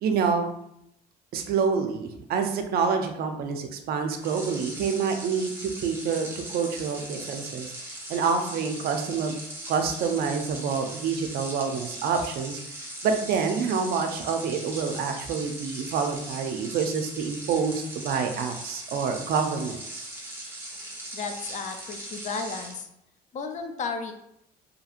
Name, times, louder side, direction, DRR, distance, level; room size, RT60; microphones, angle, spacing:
voice 1, 0.0-0.5 1.3-7.7 8.1-9.3 9.7-12.6 13.0-20.1, right 5 dB, 65° right, 5 dB, 0.4 m, -27 dB
sound 1, 4.2-22.8, right 1 dB, 15° right, 0.8 m, -39 dB
voice 2, 21.1-22.9 23.3-24.1, left 4 dB, 45° left, 6 dB, 0.4 m, -33 dB
2.8 x 2.7 x 2.4 m, 0.77 s
cardioid pair, 110°, 17 cm